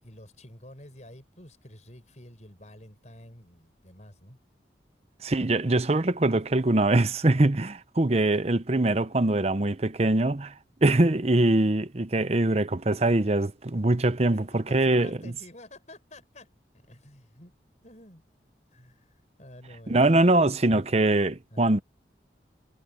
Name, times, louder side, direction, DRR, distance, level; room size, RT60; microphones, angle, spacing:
voice 1, 0.0-4.4 14.3-16.5 16.7-17.5 17.8-18.2 18.7-20.0 21.5-21.8, left 1 dB, 40° left, 5.8 m, -49 dB
voice 2, 5.2-15.3 19.9-21.8, right 2 dB, 35° right, 0.8 m, -23 dB
head